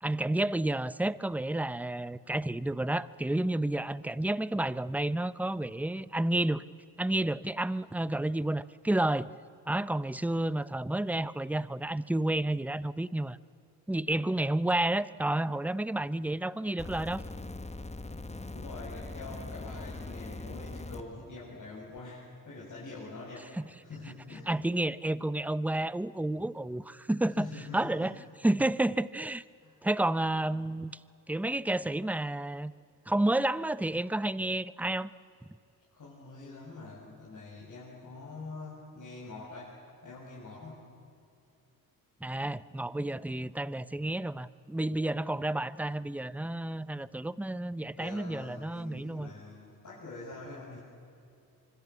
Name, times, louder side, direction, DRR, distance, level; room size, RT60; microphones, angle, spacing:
voice 1, 0.0-6.6 7.0-9.3 9.7-13.4 13.9-17.2 23.6-23.7 24.5-27.5 27.7-28.1 28.4-29.4 29.8-31.0 31.3-32.7 33.1-35.1 42.2-49.3, right 1 dB, 5° right, 17 dB, 0.7 m, -30 dB
sound 1, 16.8-21.0 22.0-22.1, left 2 dB, 15° left, 1.5 m, -41 dB
voice 2, 18.5-23.5 23.8-24.5 27.4-28.1 29.6-29.8 35.9-40.9 48.0-50.8, left 3 dB, 50° left, -6 dB, 7.8 m, -45 dB
25.5 x 24.5 x 8.4 m, 2.5 s
cardioid pair, 80°, 38 cm